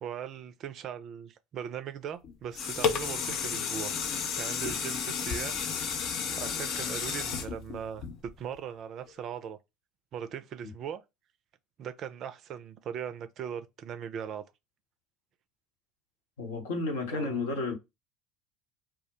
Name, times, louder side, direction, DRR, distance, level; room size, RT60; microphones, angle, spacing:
voice 1, 0.0-3.9 4.4-5.6 5.9-6.0 6.4-9.6 10.1-11.0 11.8-14.4 17.1-17.5, right 8 dB, 50° right, 0.4 m, -39 dB
sound 1, 2.2-8.6 9.1-9.2, left 6 dB, 55° left, 0.5 m, -32 dB
voice 2, 16.4-17.8, left 3 dB, 75° left, 0.8 m, -32 dB
2.2 x 2.1 x 2.8 m
hypercardioid pair, 70°, 0 cm